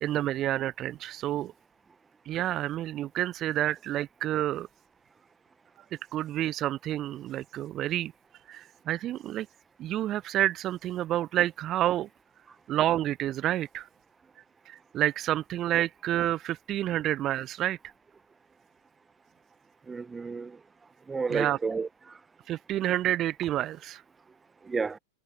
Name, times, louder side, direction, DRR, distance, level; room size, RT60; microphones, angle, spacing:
voice 1, 0.0-1.5 2.3-4.7 6.1-8.1 8.5-9.5 9.8-12.1 12.7-13.9 14.4-17.9 21.3-21.6 22.5-24.0, right 13 dB, 30° right, 0.9 m, -29 dB
voice 2, 19.9-20.6 21.1-22.2 24.6-25.0, right 4 dB, 15° right, 1.4 m, -31 dB
figure-of-eight pair, 90°, 0 cm